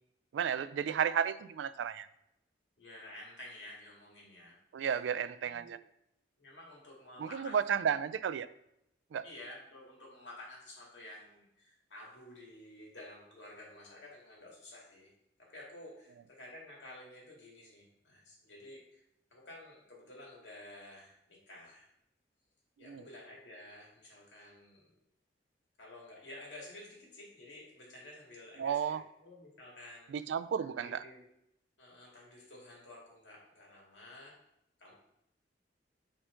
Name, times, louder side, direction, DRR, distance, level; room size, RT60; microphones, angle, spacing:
voice 1, 0.3-2.1 4.7-5.8 7.2-8.5 9.1-9.2 22.8-23.0 28.6-29.0 30.1-31.0, right 8 dB, 90° right, 15 dB, 0.3 m, -33 dB
voice 2, 2.8-4.5 5.3-5.8 6.4-8.1 9.2-15.1 15.4-19.0 19.3-21.9 22.8-24.9 25.8-30.1 30.8-31.3 31.8-34.3 34.8-34.9, left 1 dB, 90° left, -3 dB, 2.1 m, -52 dB
5.7 x 4.4 x 3.7 m, 0.80 s
head